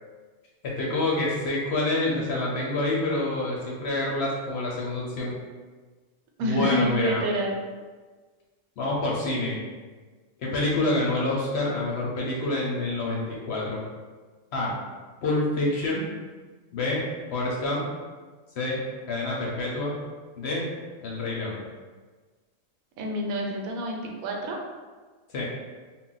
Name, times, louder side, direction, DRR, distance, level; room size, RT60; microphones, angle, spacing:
voice 1, 0.6-5.3 6.4-7.2 8.8-9.6 10.4-13.8 14.5-14.7 15.2-16.0 16.7-17.0 17.3-17.8 18.6-18.8 19.1-20.0 20.4-20.7 21.0-21.6 25.3-25.5, left 2 dB, 65° left, -4 dB, 0.7 m, -27 dB
voice 2, 6.4-7.6 23.0-24.6, equal, 85° right, 0 dB, 1.0 m, -28 dB
2.3 x 2.0 x 3.8 m, 1.4 s
omnidirectional pair, 1.4 m